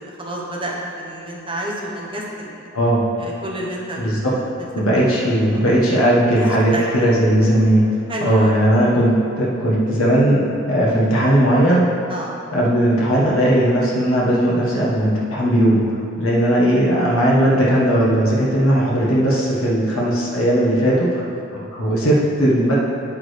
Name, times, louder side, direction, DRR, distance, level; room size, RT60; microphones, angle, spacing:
voice 1, 0.0-2.7 3.2-4.7 4.9-5.2 5.5-5.6 6.4-6.5 6.7-6.9 8.1-8.6 12.1-12.4 21.3-21.5, right 1 dB, 25° right, -3 dB, 1.2 m, -30 dB
voice 2, 4.0-4.4 4.7-7.8 8.2-11.8 12.5-15.8 16.2-21.2 21.5-22.7, right 1 dB, 90° left, -5 dB, 1.6 m, -17 dB
8.7 x 8.6 x 3.4 m, 2.7 s
head